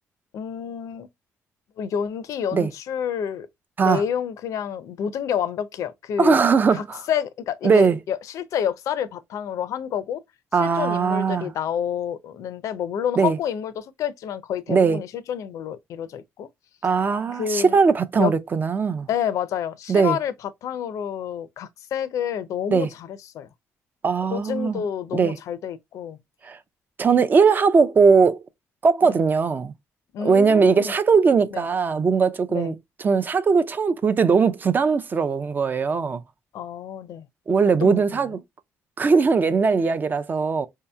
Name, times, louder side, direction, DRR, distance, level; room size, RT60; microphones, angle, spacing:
voice 1, 0.3-1.1 1.8-3.5 3.8-6.4 6.7-10.2 10.6-16.5 17.3-17.8 18.2-18.3 19.1-23.5 24.3-26.2 29.0-29.2 30.1-31.0 31.5-31.6 32.5-32.7 36.5-37.3 37.8-38.0 39.4-39.5, left 8 dB, 70° left, 0.5 m, -29 dB
voice 2, 6.2-7.0 7.6-8.0 10.5-11.5 13.2-13.4 14.7-15.0 16.8-19.1 19.9-20.2 22.7-22.9 24.0-24.8 25.1-25.4 26.4-26.6 27.0-28.4 28.8-29.7 30.2-32.7 33.0-36.2 37.5-38.4 39.0-40.7, right 5 dB, 35° right, 0.5 m, -19 dB
4.7 x 2.8 x 2.2 m
cardioid pair, 100°, 6 cm